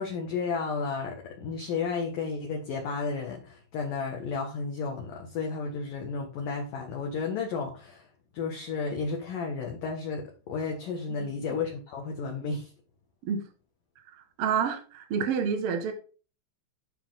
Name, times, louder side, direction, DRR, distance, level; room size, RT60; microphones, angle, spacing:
voice 1, 0.0-8.1 8.3-12.7, left 4 dB, 60° left, 1 dB, 2.4 m, -32 dB
voice 2, 14.4-15.9, right 6 dB, 60° right, 5 dB, 1.6 m, -28 dB
11.5 x 5.6 x 3.9 m, 0.35 s
omnidirectional pair, 5.5 m